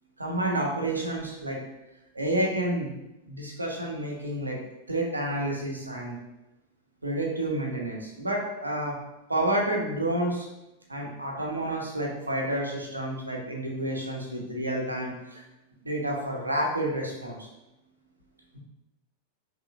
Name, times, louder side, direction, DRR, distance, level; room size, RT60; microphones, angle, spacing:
voice 1, 0.2-1.6 2.1-2.9 3.3-4.6 4.9-6.1 7.0-9.0 9.3-10.5 10.9-15.4 15.8-17.5, right 1 dB, 80° right, -2 dB, 0.9 m, -29 dB
5.5 x 3.0 x 2.5 m, 0.96 s
figure-of-eight pair, 90°, 0 cm